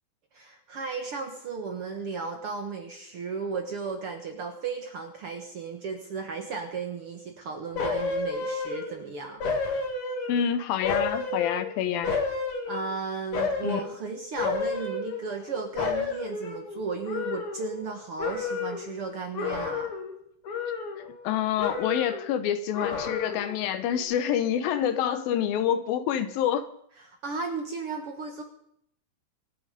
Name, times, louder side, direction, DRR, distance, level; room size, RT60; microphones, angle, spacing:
voice 1, 0.3-9.4 12.7-19.9 27.0-28.4, right 4 dB, 55° right, 4 dB, 1.7 m, -35 dB
sound 1, 7.8-9.0 9.4-10.5 10.8-13.0 13.3-13.9 14.4-15.5 15.8-17.9 18.2-18.9 19.3-20.1 20.4-21.3 21.6-22.3 22.7-23.5 23.9-24.0, left 4 dB, 45° left, 2.5 m, -31 dB
voice 2, 10.3-12.1 13.6-13.8 21.2-26.7, left 9 dB, 85° left, 11 dB, 2.8 m, -27 dB
25.0 x 8.8 x 5.2 m, 0.70 s
omnidirectional pair, 4.1 m